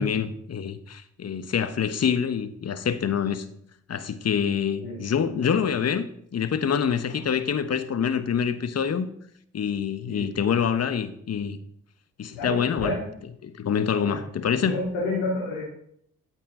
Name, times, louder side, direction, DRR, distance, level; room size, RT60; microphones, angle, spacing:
voice 1, 0.0-3.4 3.9-6.1 6.3-9.1 9.5-11.6 12.2-12.9 13.4-14.8, left 7 dB, 45° left, 1.3 m, -26 dB
voice 2, 12.3-13.0 14.0-15.6, left 2 dB, 90° left, 2.9 m, -30 dB
14.0 x 8.5 x 3.8 m
hypercardioid pair, 45°, 34 cm